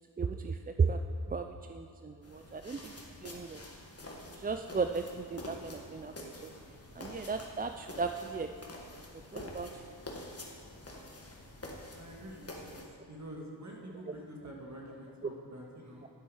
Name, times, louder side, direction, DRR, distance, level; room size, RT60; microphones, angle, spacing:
voice 1, 0.2-1.0 1.3-2.9 3.2-3.6 4.3-6.1 6.4-6.5 6.9-8.5 8.9-9.0 9.3-9.8, right 5 dB, 25° right, 6 dB, 0.3 m, -35 dB
sound 1, 2.2-12.9, left 1 dB, 35° left, 1.6 m, -47 dB
voice 2, 11.9-16.1, right 1 dB, 40° right, -1 dB, 1.6 m, -47 dB
10.5 x 7.8 x 4.8 m, 2.4 s
cardioid pair, 55°, 44 cm